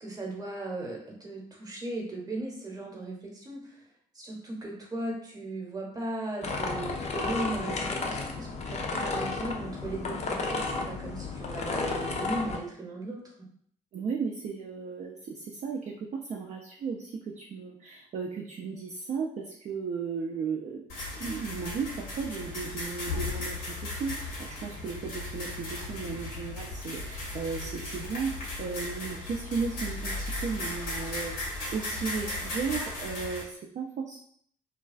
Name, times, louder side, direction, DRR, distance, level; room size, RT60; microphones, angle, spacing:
voice 1, 0.0-3.8 4.1-13.2, right 1 dB, 20° right, -1 dB, 0.9 m, -37 dB
sound 1, 6.4-12.6, left 3 dB, 40° left, 0.5 m, -32 dB
voice 2, 13.9-20.8 21.1-28.3 28.6-34.2, right 5 dB, 40° right, 0 dB, 0.4 m, -35 dB
sound 2, 20.9-33.4, left 2 dB, 70° left, 0.8 m, -36 dB
2.3 x 2.3 x 2.3 m, 0.63 s
hypercardioid pair, 45°, 18 cm